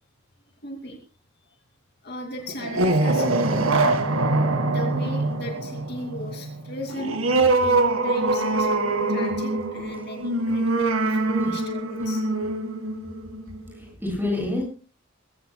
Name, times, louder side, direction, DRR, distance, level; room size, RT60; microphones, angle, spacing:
voice 1, 0.6-1.0 2.0-3.9 4.7-7.2 7.6-12.2, left 1 dB, 50° left, 3 dB, 2.7 m, -37 dB
sound 1, 2.5-13.7, right 2 dB, 85° right, 1.9 m, -23 dB
voice 2, 13.7-14.6, left 2 dB, 10° right, 0 dB, 8.0 m, -28 dB
22.0 x 16.5 x 2.3 m, 0.34 s
head